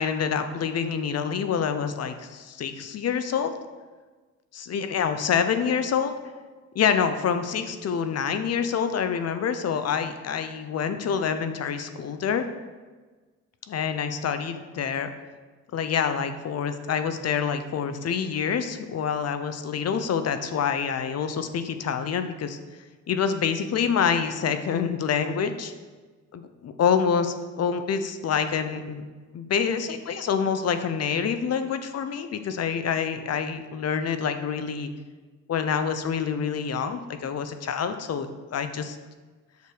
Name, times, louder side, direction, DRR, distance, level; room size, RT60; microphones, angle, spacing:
voice 1, 0.0-3.5 4.5-6.1 6.7-12.5 13.7-15.1 15.7-22.6 23.1-25.7 26.3-29.0 29.3-34.9 35.5-39.0, left 7 dB, 55° left, 9 dB, 0.9 m, -27 dB
8.2 x 6.6 x 5.0 m, 1.3 s
cardioid pair, 90°, 30 cm